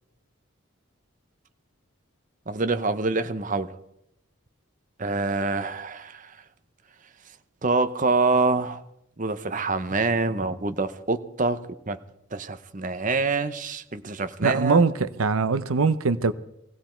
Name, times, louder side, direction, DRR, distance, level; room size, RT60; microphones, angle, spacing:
voice 1, 2.5-3.8 5.0-6.4 7.6-8.8 9.2-11.6 11.9-12.0 12.3-14.8, right 3 dB, 35° right, 0.8 m, -26 dB
voice 2, 14.4-16.3, right 4 dB, 80° right, 0.7 m, -22 dB
20.0 x 16.5 x 4.5 m
head